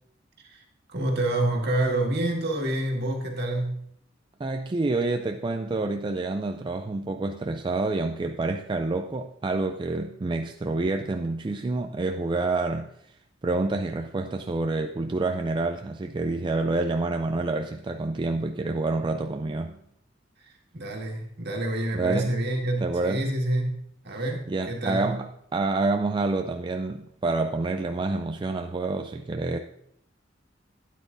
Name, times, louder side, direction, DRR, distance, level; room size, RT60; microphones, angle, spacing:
voice 1, 0.9-3.9 20.4-25.2, right 1 dB, 60° right, 0 dB, 1.8 m, -28 dB
voice 2, 4.4-13.1 13.4-19.8 21.9-22.3 22.8-23.3 24.5-29.6, right 3 dB, 25° right, 5 dB, 0.4 m, -28 dB
12.0 x 9.4 x 2.6 m, 0.73 s
head